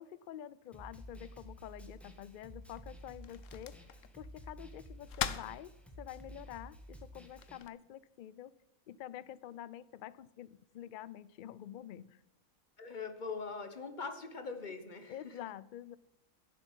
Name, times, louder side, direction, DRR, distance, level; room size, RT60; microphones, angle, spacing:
voice 1, 0.0-3.8 4.1-8.5 8.9-12.2 15.1-16.0, left 11 dB, 90° left, 18 dB, 0.4 m, -48 dB
Snare drum, 0.7-7.6, equal, ahead, 1.5 m, -52 dB
sound 1, 1.6-7.7, left 9 dB, 65° left, 1.1 m, -45 dB
voice 2, 12.8-15.5, left 4 dB, 35° left, 8 dB, 1.2 m, -42 dB
10.5 x 7.7 x 9.2 m, 0.92 s
omnidirectional pair, 1.5 m